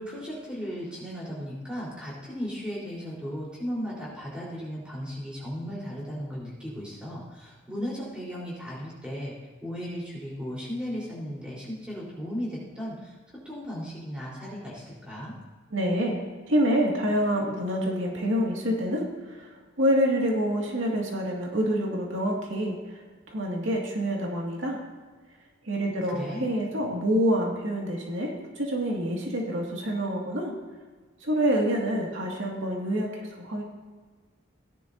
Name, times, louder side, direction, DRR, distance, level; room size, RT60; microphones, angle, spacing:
voice 1, 0.0-9.3 9.6-12.9 13.5-15.3 25.8-26.5, equal, 5° right, -6 dB, 3.8 m, -36 dB
voice 2, 15.7-19.5 19.8-23.0 23.3-24.8 25.6-30.5 31.2-33.6, equal, 80° right, -1 dB, 2.0 m, -27 dB
17.0 x 10.5 x 2.6 m, 1.4 s
head